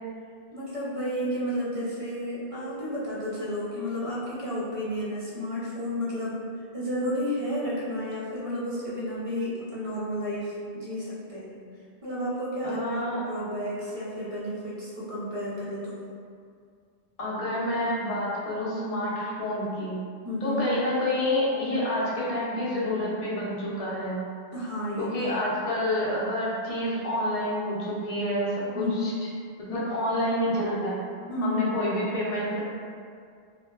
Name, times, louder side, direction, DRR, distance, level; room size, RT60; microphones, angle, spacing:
voice 1, 0.5-6.4 6.7-11.5 12.0-16.0 20.2-20.7 24.5-25.5 28.7-29.2 31.3-31.6, left 1 dB, 45° right, -8 dB, 0.4 m, -31 dB
voice 2, 12.6-13.2 17.2-20.0 20.4-24.2 25.0-29.1 29.6-31.0 31.4-32.6, left 1 dB, 45° left, -7 dB, 0.5 m, -28 dB
2.7 x 2.1 x 2.3 m, 2.2 s
omnidirectional pair, 1.1 m